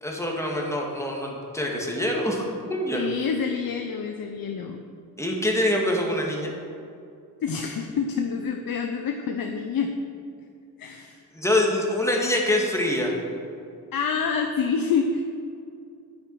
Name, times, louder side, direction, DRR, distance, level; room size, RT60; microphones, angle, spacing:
voice 1, 0.0-3.1 5.2-6.5 11.3-13.1, left 1 dB, 10° left, -1 dB, 2.1 m, -25 dB
voice 2, 2.9-4.8 7.4-9.9 10.8-11.2 13.9-15.2, left 6 dB, 70° left, 4 dB, 0.8 m, -27 dB
10.0 x 9.4 x 4.8 m, 2.5 s
cardioid pair, 75°, 36 cm